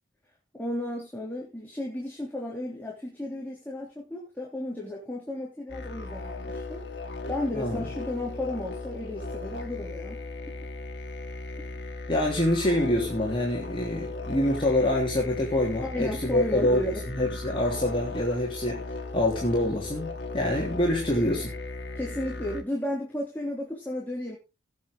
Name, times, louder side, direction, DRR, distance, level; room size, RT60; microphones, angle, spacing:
voice 1, 0.5-6.9 7.3-10.2 15.8-17.0 21.9-24.4, left 1 dB, 10° left, 3.3 m, -34 dB
sound 1, 5.7-22.6, left 2 dB, 65° left, 2.3 m, -37 dB
voice 2, 12.1-18.8 19.1-21.6, left 1 dB, 25° left, 3.2 m, -26 dB
18.0 x 7.3 x 3.9 m
head